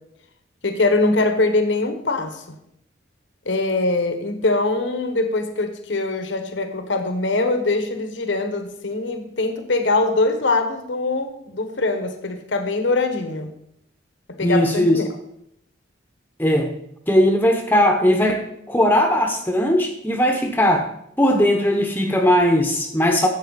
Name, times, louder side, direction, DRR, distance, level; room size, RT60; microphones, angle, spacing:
voice 1, 0.6-2.4 3.5-13.5 14.4-15.1, left 2 dB, 75° left, 7 dB, 1.2 m, -22 dB
voice 2, 14.4-15.0 16.4-16.7 17.1-20.9 21.2-23.3, equal, 10° left, 4 dB, 0.8 m, -18 dB
12.0 x 8.0 x 4.1 m, 0.77 s
head